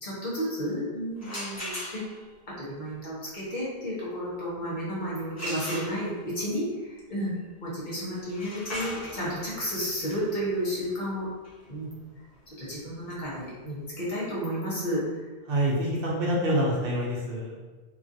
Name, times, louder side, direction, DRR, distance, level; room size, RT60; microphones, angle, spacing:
voice 1, 0.0-2.0 2.6-7.3 7.6-11.3 11.7-11.9 12.5-15.3 15.8-16.3, equal, 50° left, -8 dB, 1.1 m, -32 dB
sound 1, 1.2-2.3 5.4-6.4 8.2-13.9, equal, 15° left, 0.9 m, -39 dB
voice 2, 15.5-17.5, equal, 65° right, -4 dB, 0.8 m, -26 dB
2.9 x 2.4 x 2.6 m, 1.2 s
omnidirectional pair, 1.0 m